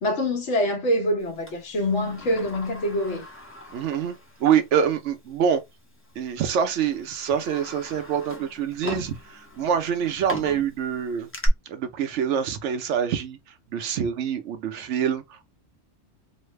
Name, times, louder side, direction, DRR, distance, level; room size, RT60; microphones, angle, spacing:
voice 1, 0.0-3.3, left 1 dB, 65° left, 1.3 m, -25 dB
Sliding door, 1.5-4.7 5.1-5.2 6.1-6.3 6.8-11.5, left 1 dB, 15° left, 0.5 m, -39 dB
voice 2, 3.7-4.1 4.4-5.6 6.2-11.3 11.7-13.4 13.7-15.6, right 8 dB, 65° right, 0.9 m, -25 dB
3.2 x 2.1 x 3.1 m
omnidirectional pair, 1.3 m